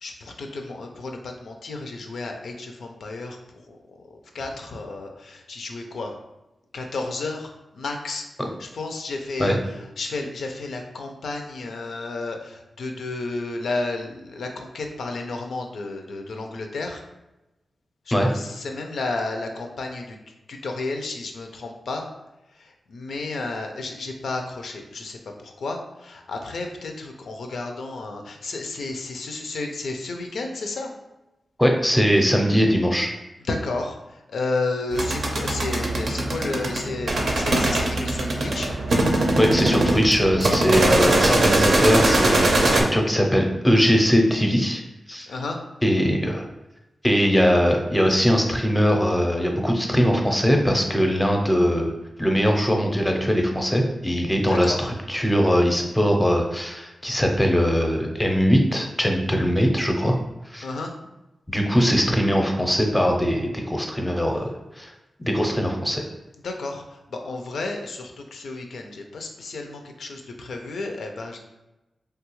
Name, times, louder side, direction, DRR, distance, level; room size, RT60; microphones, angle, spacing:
voice 1, 0.0-3.4 4.3-6.1 6.7-8.2 8.6-9.6 10.0-17.0 18.3-20.2 20.5-22.1 22.6-30.9 33.4-38.7 45.3-45.6 54.5-54.8 60.6-61.0 66.4-71.4, left 3 dB, 80° left, 3 dB, 0.4 m, -32 dB
voice 2, 31.6-33.1 39.4-44.8 45.1-45.3 45.8-46.5 47.0-51.9 52.2-60.1 60.5-60.7 61.5-64.9 65.2-66.0, equal, 10° left, 2 dB, 0.5 m, -21 dB
sound 1, 34.9-42.8, right 1 dB, 70° right, 0.5 m, -21 dB
3.3 x 2.3 x 3.0 m, 0.98 s
wide cardioid pair, 80°, 0 cm